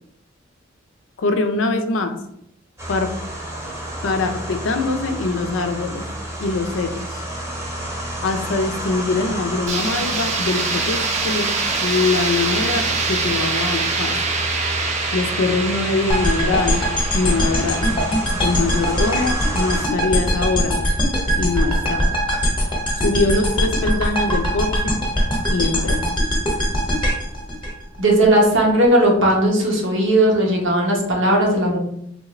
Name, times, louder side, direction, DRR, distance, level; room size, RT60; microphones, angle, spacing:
voice 1, 1.2-2.2 2.9-3.1 4.0-6.0 6.4-7.2 8.2-11.5 11.8-14.2 15.1-16.8 17.1-18.0 18.4-20.8 21.4-22.2 22.9-25.0 25.5-26.0, left 3 dB, 75° left, 7 dB, 0.4 m, -23 dB
sound 1, 2.8-19.9, right 1 dB, 15° right, 0.8 m, -30 dB
sound 2, 9.7-19.4, right 4 dB, 35° right, 0.4 m, -25 dB
sound 3, 16.1-28.3, equal, 25° left, 0.9 m, -21 dB
voice 2, 28.0-31.8, right 1 dB, 75° right, -2 dB, 1.0 m, -17 dB
3.5 x 2.4 x 3.0 m, 0.74 s
head